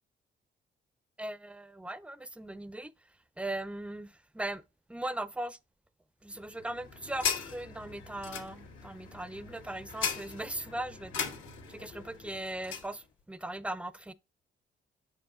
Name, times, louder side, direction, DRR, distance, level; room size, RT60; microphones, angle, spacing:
voice 1, 1.2-2.9 3.4-4.6 4.9-5.6 6.2-11.1 11.7-14.1, right 1 dB, 5° right, 0.6 m, -39 dB
sound 1, 6.3-12.9, left 7 dB, 80° left, 1.8 m, -39 dB
7.0 x 4.8 x 3.6 m
cardioid pair, 90°, 20 cm